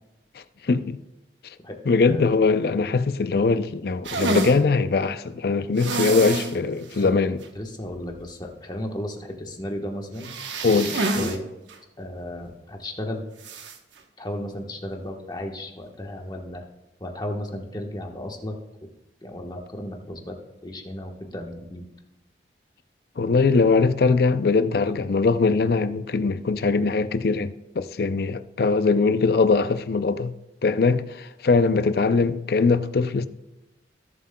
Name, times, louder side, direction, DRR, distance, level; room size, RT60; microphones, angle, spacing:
voice 1, 0.7-1.0 1.9-7.4 10.6-11.3 23.2-30.3 30.6-33.3, left 4 dB, 55° left, 0.5 m, -21 dB
sound 1, 4.0-4.6 5.8-6.5 6.9-7.0 7.4-7.5 10.2-11.4 11.7-11.8 13.4-13.8, right 3 dB, 90° right, 1.0 m, -27 dB
voice 2, 7.0-10.3 11.1-11.5 12.0-13.2 14.2-16.6 17.0-18.5 19.2-20.3 20.6-21.8, left 1 dB, 25° left, 1.2 m, -34 dB
17.0 x 7.3 x 2.2 m
head